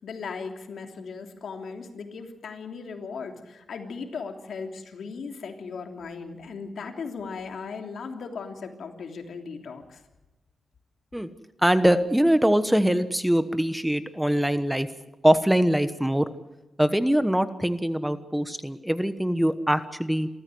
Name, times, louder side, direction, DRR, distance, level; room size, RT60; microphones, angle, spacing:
voice 1, 0.0-10.0, left 5 dB, 75° left, 4 dB, 3.1 m, -37 dB
voice 2, 11.6-14.9 15.2-16.3 16.8-20.3, equal, 5° right, 12 dB, 1.2 m, -23 dB
27.5 x 14.0 x 7.9 m, 1.0 s
cardioid pair, 85°, 0 cm